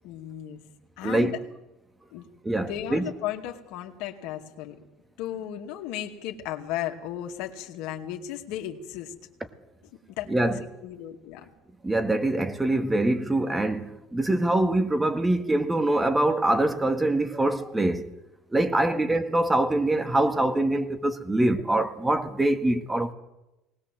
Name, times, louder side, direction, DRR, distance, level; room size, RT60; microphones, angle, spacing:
voice 1, 0.0-0.6 1.0-1.4 2.1-2.2 2.5-4.8 5.2-9.1 10.2-10.5 10.8-11.5 18.6-19.1, left 11 dB, 75° left, 2.3 m, -35 dB
voice 2, 1.0-1.4 2.4-3.1 10.3-10.6 11.8-18.1 18.5-23.1, right 1 dB, 10° right, 1.7 m, -24 dB
19.5 x 18.5 x 7.6 m
supercardioid pair, 110°, 0 cm